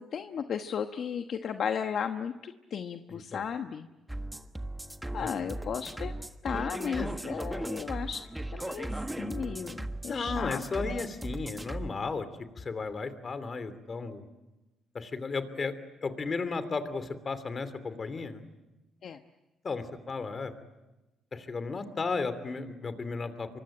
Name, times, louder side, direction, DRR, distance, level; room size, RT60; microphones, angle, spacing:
voice 1, 0.0-3.9 5.1-6.1 6.4-8.2 8.5-11.0 19.0-19.2, left 7 dB, 60° left, 7 dB, 1.1 m, -35 dB
sound 1, 4.1-11.9, right 1 dB, 10° right, 1.4 m, -37 dB
voice 2, 10.1-12.3 12.6-14.3 14.9-15.7 16.0-18.4 19.6-20.5 21.3-23.6, left 4 dB, 40° left, 12 dB, 2.8 m, -34 dB
26.0 x 24.0 x 9.0 m, 1.0 s
cardioid pair, 90°, 0 cm